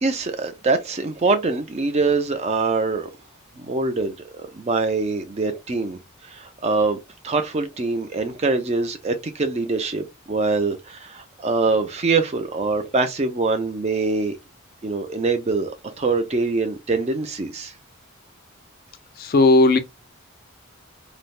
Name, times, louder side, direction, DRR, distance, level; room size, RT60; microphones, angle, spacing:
voice 1, 0.0-3.1 3.6-7.0 7.2-14.3 14.8-17.7, right 3 dB, 30° right, 0.4 m, -24 dB
voice 2, 19.2-19.8, left 2 dB, 40° left, 0.3 m, -15 dB
3.2 x 2.1 x 2.4 m
head